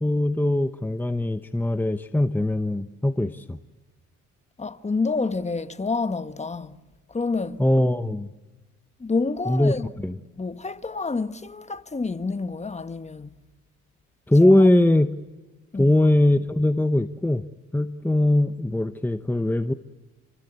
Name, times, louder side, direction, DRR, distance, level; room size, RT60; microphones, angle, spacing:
voice 1, 0.0-3.6 7.6-8.3 9.5-10.2 14.3-15.2 15.7-17.5 17.7-19.7, left 1 dB, 5° left, 1.0 m, -21 dB
voice 2, 4.6-6.8 7.1-7.6 9.0-9.9 10.4-13.4 14.4-14.5 15.7-15.9, left 4 dB, 20° left, 1.4 m, -28 dB
29.5 x 24.5 x 8.2 m
cardioid pair, 90°, 30 cm